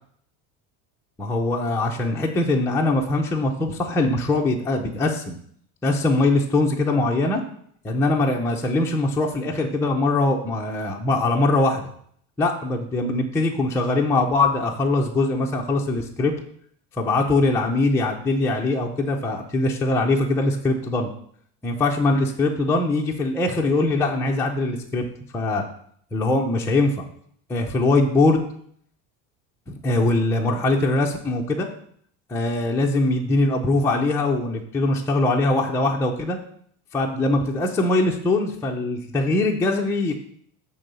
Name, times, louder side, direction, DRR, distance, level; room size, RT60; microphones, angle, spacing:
voice 1, 1.2-5.4 5.8-7.4 7.8-11.8 12.4-16.3 16.9-21.1 21.6-25.0 25.3-25.6 26.1-27.0 27.5-28.4 29.7-31.7 32.3-36.4 36.9-40.1, left 2 dB, 5° left, -1 dB, 0.6 m, -22 dB
7.7 x 3.8 x 6.7 m, 0.63 s
cardioid pair, 155°, 37 cm